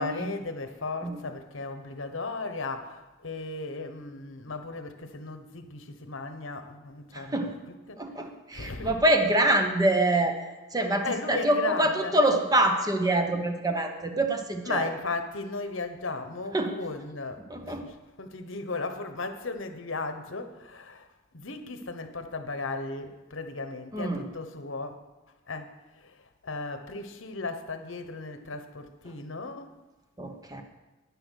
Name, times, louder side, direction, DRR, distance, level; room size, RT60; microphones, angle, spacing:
voice 1, 0.0-8.0 8.5-9.0 9.4-9.5 11.0-12.4 14.6-25.0 25.5-29.7, left 3 dB, 70° left, 8 dB, 1.1 m, -36 dB
voice 2, 7.1-7.6 8.0-10.4 10.7-14.9 16.5-16.7 17.5-17.8 23.9-24.3 30.2-30.6, right 1 dB, 20° right, 5 dB, 1.0 m, -25 dB
10.5 x 9.7 x 6.4 m, 1.1 s
head